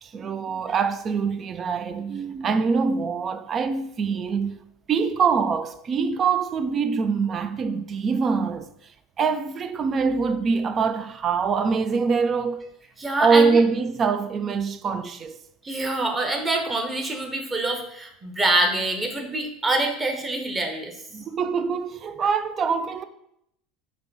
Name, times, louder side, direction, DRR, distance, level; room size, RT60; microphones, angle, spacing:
voice 1, 0.0-4.6 4.9-8.7 9.2-12.7 13.2-15.4 21.1-23.0, right 5 dB, 35° right, 0.4 m, -24 dB
voice 2, 13.0-13.6 15.6-20.9, right 2 dB, 20° right, 1.0 m, -25 dB
4.8 x 2.2 x 4.7 m
figure-of-eight pair, 70°, 0 cm